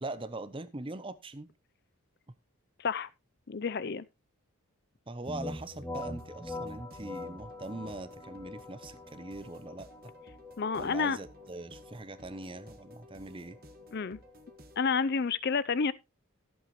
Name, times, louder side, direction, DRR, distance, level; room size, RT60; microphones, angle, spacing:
voice 1, 0.0-1.5 5.1-9.9 10.8-13.6, right 2 dB, 25° right, 0.6 m, -42 dB
voice 2, 3.5-4.0 10.6-11.2 13.9-14.2 14.8-15.9, left 5 dB, 45° left, 0.5 m, -29 dB
sound 1, 5.2-14.8, right 1 dB, 40° right, 1.5 m, -56 dB
sound 2, 5.3-14.9, left 2 dB, 10° left, 1.4 m, -44 dB
14.5 x 8.0 x 3.0 m
head